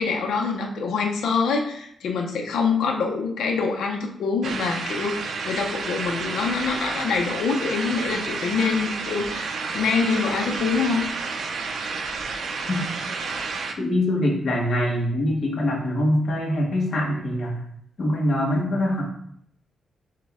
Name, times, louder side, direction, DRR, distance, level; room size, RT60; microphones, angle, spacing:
voice 1, 0.0-11.1, left 5 dB, 85° left, 2 dB, 0.6 m, -25 dB
sound 1, 4.4-13.7, right 4 dB, 55° right, 0.4 m, -30 dB
voice 2, 13.8-17.6 18.0-19.0, left 1 dB, 45° left, -2 dB, 1.1 m, -23 dB
6.4 x 2.2 x 3.5 m, 0.69 s
wide cardioid pair, 175°, 0 cm